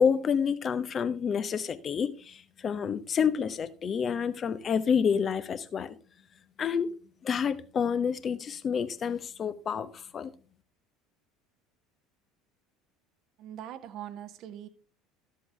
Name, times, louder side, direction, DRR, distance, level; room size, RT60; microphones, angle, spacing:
voice 1, 0.0-6.0 6.6-6.9 7.2-10.3, left 7 dB, 35° left, 0.9 m, -28 dB
voice 2, 13.4-14.7, right 11 dB, 50° right, 1.0 m, -42 dB
13.5 x 7.7 x 3.3 m
figure-of-eight pair, 65°, 0 cm